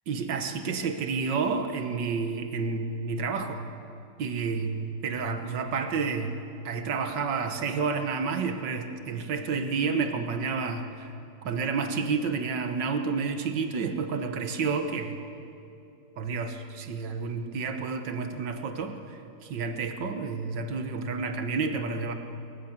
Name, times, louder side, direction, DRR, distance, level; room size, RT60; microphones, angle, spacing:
voice 1, 0.1-3.7 4.2-6.4 6.7-11.1 11.4-15.2 16.2-22.1, right 5 dB, 75° right, 7 dB, 2.0 m, -30 dB
28.0 x 15.0 x 7.4 m, 2.7 s
omnidirectional pair, 1.9 m